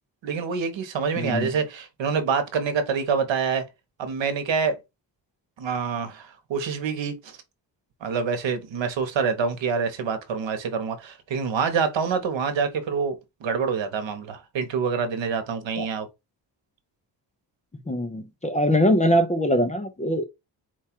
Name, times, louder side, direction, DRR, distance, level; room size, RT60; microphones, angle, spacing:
voice 1, 0.2-3.7 4.0-4.8 5.6-7.4 8.0-16.1, right 5 dB, 80° right, 1.0 m, -26 dB
voice 2, 1.2-1.5 15.8-15.9 17.9-20.3, equal, 15° left, 0.5 m, -22 dB
4.5 x 2.4 x 4.3 m
wide cardioid pair, 140°, 44 cm